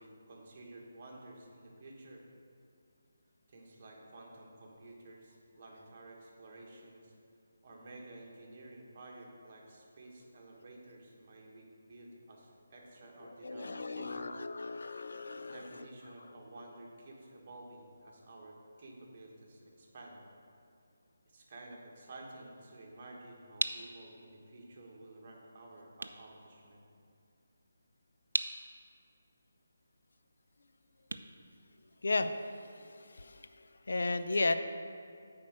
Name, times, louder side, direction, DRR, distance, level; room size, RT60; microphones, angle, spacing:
voice 1, 0.0-2.2 3.5-7.1 7.6-14.3 15.3-20.2 21.2-26.8, right 2 dB, 35° right, -2 dB, 1.3 m, -52 dB
voice 2, 13.2-15.9 16.2-16.3 32.0-34.6, left 2 dB, 75° left, 9 dB, 0.5 m, -35 dB
sound 1, 23.0-32.4, right 3 dB, 85° right, 0.4 m, -42 dB
8.6 x 4.5 x 6.0 m, 2.4 s
hypercardioid pair, 170°, 0 cm